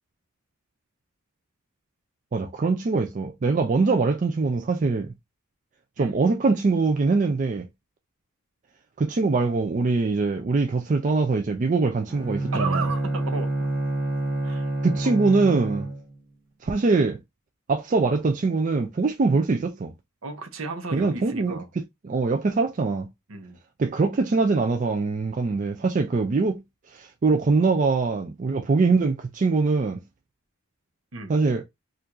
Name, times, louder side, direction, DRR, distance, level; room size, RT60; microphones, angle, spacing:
voice 1, 2.3-5.1 6.0-7.7 9.0-12.8 14.8-15.9 16.6-17.2 17.7-19.9 20.9-23.1 23.8-26.6 26.9-30.0 31.3-31.6, right 3 dB, 35° right, 0.4 m, -23 dB
Bowed string instrument, 12.1-16.2, right 2 dB, 10° right, 1.2 m, -28 dB
voice 2, 12.5-13.5 14.4-14.7 15.0-15.2 20.2-21.7 23.3-23.6 31.1-31.3, right 3 dB, 70° right, 0.9 m, -33 dB
4.5 x 2.5 x 2.5 m
head